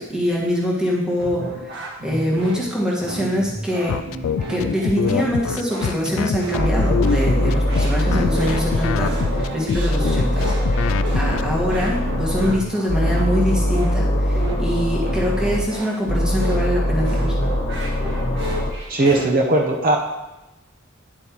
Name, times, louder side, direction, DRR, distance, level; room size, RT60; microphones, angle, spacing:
voice 1, 0.0-4.0 4.5-17.3, equal, 5° right, -4 dB, 1.6 m, -24 dB
sound 1, 1.2-19.3, right 1 dB, 65° right, 1.7 m, -32 dB
sound 2, 3.9-11.4, left 7 dB, 80° left, 0.3 m, -24 dB
sound 3, 6.6-9.4 9.7-12.5 12.9-15.6 16.1-18.7, equal, 55° left, 1.2 m, -22 dB
voice 2, 18.9-20.0, right 2 dB, 45° right, 0 dB, 0.8 m, -18 dB
9.8 x 7.8 x 3.0 m, 0.99 s
head